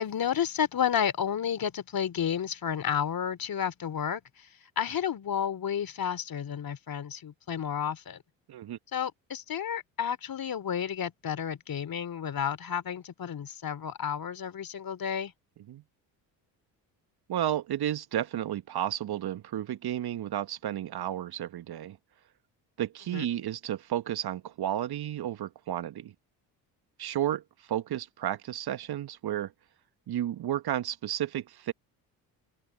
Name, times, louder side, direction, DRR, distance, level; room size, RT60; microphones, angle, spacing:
voice 1, 0.0-4.5 4.8-8.2 8.9-15.3 23.1-23.3, left 8 dB, 45° left, 3.1 m, -31 dB
voice 2, 17.3-22.0 22.8-26.1 27.0-29.5 30.1-31.7, right 11 dB, 50° right, 1.7 m, -32 dB
open air
hypercardioid pair, 55°, 50 cm